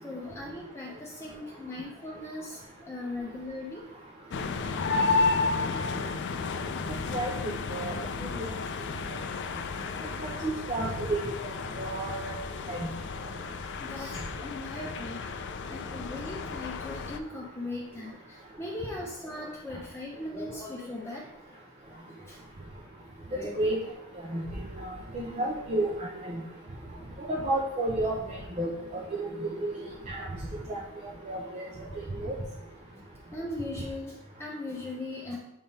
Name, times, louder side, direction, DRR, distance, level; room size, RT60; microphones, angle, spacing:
voice 1, 0.0-3.8 5.8-5.9 10.8-10.9 13.1-15.3 15.7-21.2 21.5-22.4 23.3-23.5 26.7-27.0 30.2-30.5 32.9-33.0 33.3-35.4, left 2 dB, 10° left, -4 dB, 0.7 m, -39 dB
sound 1, 4.3-17.2, left 4 dB, 55° left, 0.4 m, -32 dB
voice 2, 7.1-7.9 8.2-8.4 10.2-11.3 11.8-12.4 12.7-12.9 23.6-23.8 24.3-24.4 24.8-26.4 27.2-30.3 30.7-30.8 31.3-31.7 32.0-32.4, right 2 dB, 35° right, -2 dB, 0.7 m, -32 dB
7.1 x 3.5 x 4.1 m, 0.90 s
head